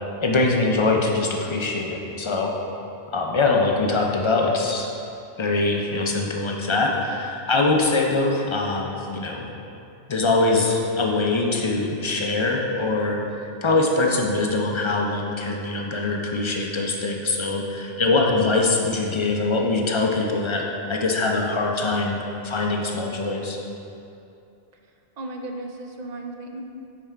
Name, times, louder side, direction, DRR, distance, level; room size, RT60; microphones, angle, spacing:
voice 1, 0.2-2.5 3.1-4.9 5.4-9.5 10.1-13.2 13.6-23.6, left 3 dB, 40° left, 0 dB, 0.5 m, -23 dB
voice 2, 25.2-26.6, right 2 dB, 55° right, 2 dB, 0.5 m, -35 dB
5.7 x 4.7 x 4.4 m, 2.7 s
omnidirectional pair, 1.1 m